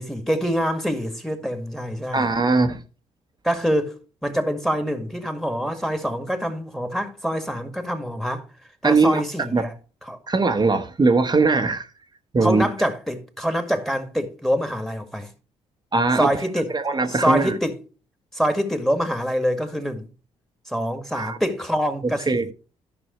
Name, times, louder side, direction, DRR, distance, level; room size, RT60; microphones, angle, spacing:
voice 1, 0.0-2.3 3.4-8.4 8.8-9.7 10.0-10.2 12.4-15.3 16.2-16.7 17.1-17.8 18.3-20.1 20.7-22.5, equal, ahead, 2.0 m, -25 dB
voice 2, 2.1-2.8 8.8-9.2 9.5-9.6 10.3-11.9 12.3-12.7 15.9-16.3 16.7-17.6 21.1-21.4 22.3-22.5, right 3 dB, 25° right, 1.1 m, -20 dB
14.0 x 6.1 x 3.1 m
hypercardioid pair, 45°, 16 cm